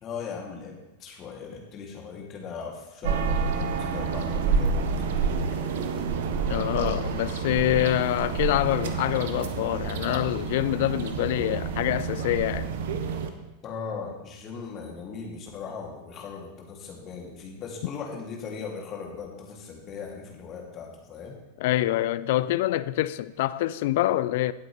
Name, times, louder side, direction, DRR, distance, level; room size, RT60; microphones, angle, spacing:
voice 1, 0.0-5.7 13.6-21.4, left 5 dB, 30° left, 2.6 m, -38 dB
sound 1, 3.0-13.3, right 5 dB, 55° right, 1.0 m, -28 dB
voice 2, 6.5-12.7 21.6-24.5, left 15 dB, 50° left, 0.3 m, -26 dB
17.5 x 8.1 x 3.3 m
figure-of-eight pair, 90°, 0 cm